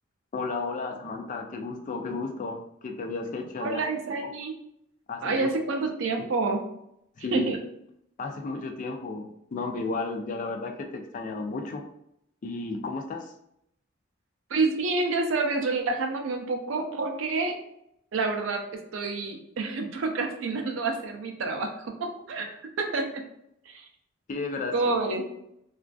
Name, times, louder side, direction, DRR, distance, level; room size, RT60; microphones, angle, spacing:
voice 1, 0.3-3.8 5.1-5.5 7.2-7.5 8.2-11.8 12.4-13.3 24.3-25.0, left 3 dB, 40° left, 4 dB, 0.3 m, -33 dB
voice 2, 3.6-4.5 5.2-6.6 7.3-7.6 14.5-17.6 18.1-18.6 18.9-23.2 23.7-23.8 24.7-25.2, right 3 dB, 75° right, 4 dB, 0.4 m, -28 dB
2.4 x 2.4 x 2.2 m, 0.76 s
head